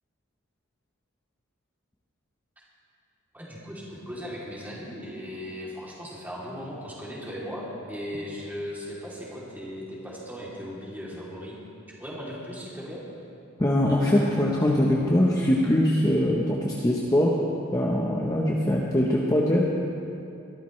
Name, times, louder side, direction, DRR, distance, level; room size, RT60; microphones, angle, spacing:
voice 1, 3.3-11.6 12.0-13.0, equal, 10° right, -6 dB, 2.9 m, -37 dB
voice 2, 13.6-17.3 17.7-19.6, left 1 dB, 15° left, -3 dB, 0.9 m, -22 dB
22.0 x 13.0 x 3.2 m, 2.7 s
head